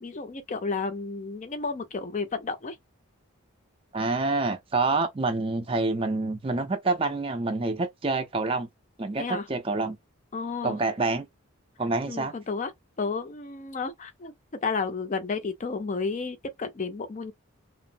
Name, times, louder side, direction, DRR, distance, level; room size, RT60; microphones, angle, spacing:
voice 1, 0.0-2.7 9.2-9.4 10.3-10.8 12.0-12.7 13.0-14.3 14.6-17.3, left 4 dB, 35° left, 0.4 m, -32 dB
voice 2, 3.9-8.7 9.0-10.0 10.6-11.3 11.8-12.3, right 3 dB, 25° right, 0.4 m, -27 dB
2.9 x 2.0 x 2.5 m
head